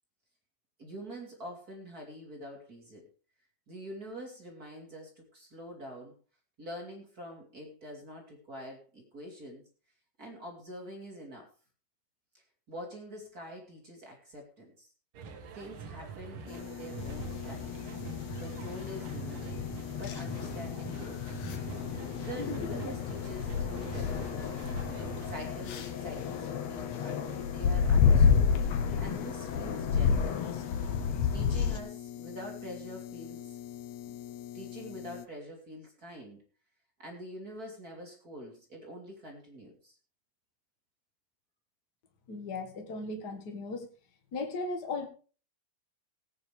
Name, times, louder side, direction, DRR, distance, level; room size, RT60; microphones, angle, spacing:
voice 1, 0.8-3.1 3.7-6.1 6.6-9.6 10.2-11.5 12.3-14.9 15.5-17.8 18.4-19.6 19.9-21.4 22.2-24.6 25.2-28.5 29.0-30.4 31.3-33.6 34.0-34.2 34.5-36.4 37.0-40.0, equal, 30° right, 0 dB, 3.1 m, -45 dB
sound 1, 15.1-25.4, right 6 dB, 55° right, 1.6 m, -44 dB
sound 2, 16.5-35.3, left 12 dB, 85° left, 1.5 m, -44 dB
sound 3, 17.0-31.8, left 6 dB, 60° left, 2.3 m, -30 dB
voice 2, 42.3-43.9 44.3-45.1, left 3 dB, 40° left, 4 dB, 1.7 m, -36 dB
17.5 x 9.6 x 3.4 m, 0.37 s
omnidirectional pair, 3.9 m